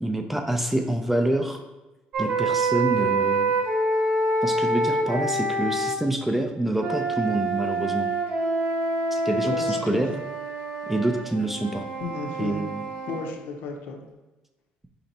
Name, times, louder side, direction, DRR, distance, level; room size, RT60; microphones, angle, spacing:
voice 1, 0.0-1.6 2.2-3.5 4.4-8.1 9.1-10.1 10.9-11.8 12.4-12.8, right 1 dB, 5° right, 4 dB, 0.3 m, -26 dB
sound 1, 2.1-6.0 6.8-13.3, right 2 dB, 55° right, 0.8 m, -26 dB
voice 2, 9.5-10.2 12.0-12.6 13.1-14.0, left 4 dB, 75° left, 3 dB, 0.7 m, -34 dB
4.3 x 2.9 x 4.0 m, 1.1 s
cardioid pair, 150°, 3 cm